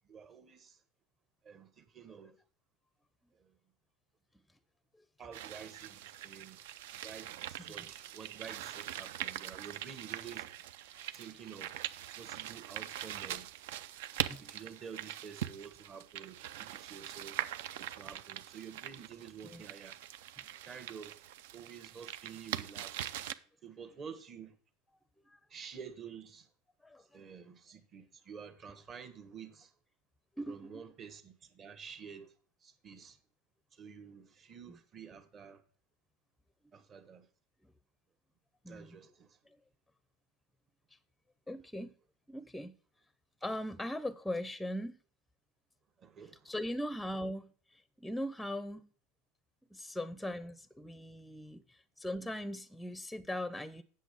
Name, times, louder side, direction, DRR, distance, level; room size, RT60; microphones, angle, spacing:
voice 1, 0.1-0.8 1.4-2.4 3.4-3.5 5.2-6.6 7.0-10.5 11.1-11.7 12.2-13.5 14.4-17.4 17.8-20.0 20.7-21.2 21.5-23.1 23.6-24.6 25.5-26.5 27.1-29.7 30.5-32.3 32.6-33.2 33.7-35.6 36.7-37.3 38.7-39.4 46.0-46.5, right 6 dB, 35° right, 1.4 m, -50 dB
sound 1, 5.3-23.3, right 12 dB, 70° right, 0.5 m, -42 dB
voice 2, 26.8-27.2 30.4-30.8 34.7-34.8 38.6-39.0 41.5-41.9 42.3-42.7 43.4-45.0 46.4-48.9 49.7-53.8, left 1 dB, 5° left, 0.6 m, -40 dB
8.3 x 6.7 x 4.8 m
hypercardioid pair, 90°, 0 cm